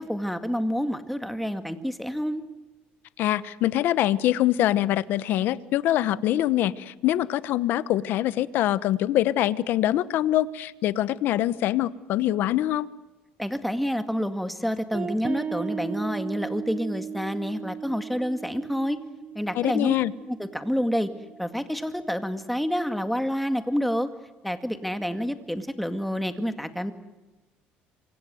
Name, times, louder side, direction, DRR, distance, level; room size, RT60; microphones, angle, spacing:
voice 1, 0.0-2.4 13.4-19.0 19.3-19.9 20.3-21.1 21.4-24.1 24.4-26.9, equal, ahead, 8 dB, 2.0 m, -28 dB
voice 2, 3.2-12.9 19.5-20.1, left 13 dB, 65° left, 16 dB, 1.0 m, -24 dB
sound 1, 14.9-21.8, right 7 dB, 35° right, 1.0 m, -37 dB
27.5 x 25.0 x 7.8 m, 1.1 s
cardioid pair, 135°, 4 cm